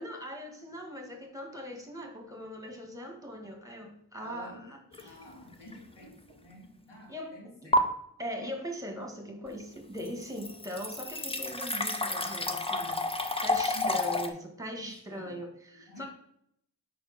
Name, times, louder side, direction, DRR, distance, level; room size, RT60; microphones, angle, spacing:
voice 1, 0.0-5.2 7.1-7.3 7.6-7.7 8.2-13.1 13.4-16.1, equal, 10° right, 3 dB, 1.8 m, -40 dB
voice 2, 4.2-4.7 5.0-7.9 13.7-14.0 14.8-15.4 15.7-16.1, left 1 dB, 85° left, -2 dB, 2.4 m, -48 dB
sound 1, 4.9-5.2 5.7-5.8 7.7-7.8 9.6-9.7 10.0-14.3, left 2 dB, 15° left, 0.7 m, -30 dB
5.2 x 4.4 x 5.4 m, 0.71 s
cardioid pair, 55°, 41 cm